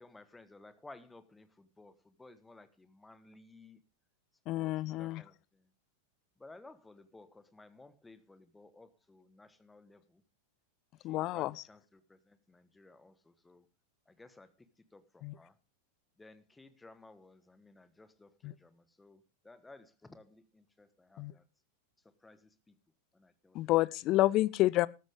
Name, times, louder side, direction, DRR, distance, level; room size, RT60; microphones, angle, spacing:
voice 1, 0.0-3.8 4.5-5.7 6.4-10.2 11.0-13.7 14.1-15.6 16.2-21.5 22.0-22.8 23.1-23.7, left 2 dB, 10° left, 13 dB, 1.4 m, -57 dB
voice 2, 4.5-5.2 11.0-11.6 15.2-15.4 18.4-18.5 21.2-21.3 23.5-24.9, left 17 dB, 40° left, 22 dB, 0.6 m, -29 dB
14.0 x 13.5 x 3.6 m, 0.30 s
figure-of-eight pair, 90°, 0 cm